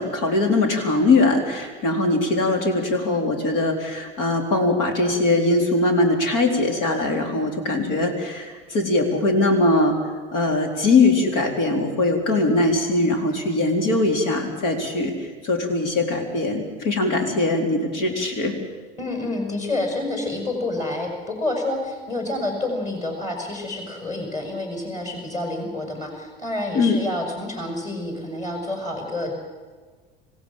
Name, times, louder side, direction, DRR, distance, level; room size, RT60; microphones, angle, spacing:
voice 1, 0.0-10.0 10.3-18.5 26.7-27.0, left 2 dB, 55° left, 3 dB, 4.3 m, -21 dB
voice 2, 19.0-29.3, left 2 dB, 25° left, 1 dB, 6.5 m, -28 dB
27.0 x 16.5 x 7.5 m, 1.5 s
figure-of-eight pair, 75°, 31 cm